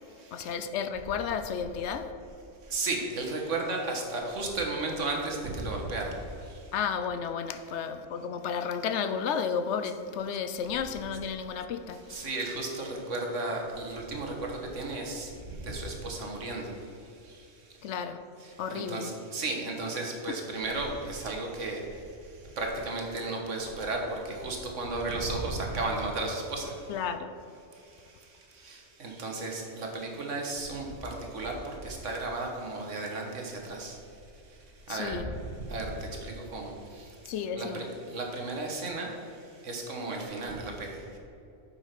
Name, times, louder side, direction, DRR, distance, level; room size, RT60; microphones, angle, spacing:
voice 1, 0.3-2.1 6.7-12.3 17.8-18.2 18.6-19.1 20.3-20.4 26.9-27.3 34.9-35.3 37.3-37.9, left 7 dB, 70° left, 10 dB, 0.8 m, -32 dB
voice 2, 2.7-6.1 12.1-16.7 18.7-21.8 22.6-26.7 28.6-31.6 31.8-34.0 34.9-35.2 35.7-35.9 36.2-36.7 37.5-39.1 39.6-41.0, right 2 dB, 75° right, 1 dB, 1.7 m, -34 dB
8.3 x 5.7 x 5.9 m, 2.7 s
omnidirectional pair, 1.3 m